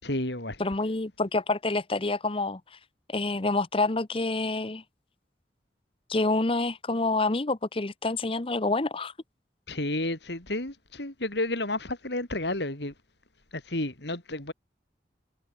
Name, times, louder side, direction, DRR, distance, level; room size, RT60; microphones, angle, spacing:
voice 1, 0.0-0.6 9.7-12.9 13.5-14.5, left 1 dB, 70° left, 4.4 m, -31 dB
voice 2, 0.6-2.6 3.1-4.8 6.1-9.1, left 2 dB, 30° left, 0.9 m, -27 dB
head